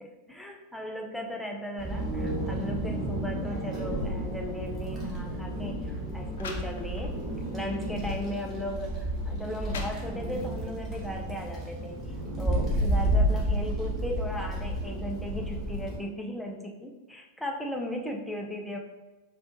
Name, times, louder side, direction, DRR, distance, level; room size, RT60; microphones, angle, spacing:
voice 1, 0.0-7.3 7.5-12.0 12.4-18.8, equal, 5° left, 1 dB, 0.5 m, -37 dB
Wind, 1.8-16.0, equal, 15° right, 1.2 m, -31 dB
sound 1, 5.2-5.3 6.0-6.1 6.3-7.3 7.8-8.0 8.8-8.9 9.4-10.5, left 4 dB, 60° left, 0.4 m, -41 dB
5.1 x 2.3 x 2.6 m, 1.2 s
figure-of-eight pair, 90°, 0 cm